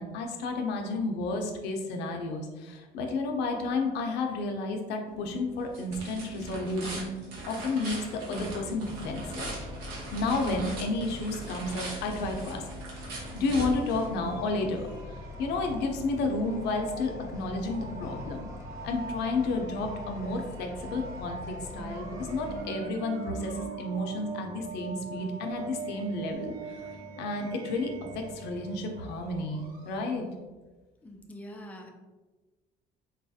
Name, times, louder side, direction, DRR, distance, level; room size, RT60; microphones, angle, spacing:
voice 1, 0.0-7.1 7.4-9.5 10.1-12.6 13.3-14.9 15.4-18.5 18.8-30.3, left 3 dB, 85° left, 3 dB, 0.5 m, -31 dB
sound 1, 5.1-14.5, right 2 dB, 85° right, 1.1 m, -40 dB
sound 2, 8.9-22.6, left 3 dB, 20° right, 0.8 m, -44 dB
sound 3, 12.8-30.3, right 4 dB, 65° right, 0.7 m, -43 dB
voice 2, 31.0-31.9, equal, 10° left, 2 dB, 0.4 m, -44 dB
3.9 x 2.3 x 2.6 m, 1.2 s
cardioid pair, 110°, 17 cm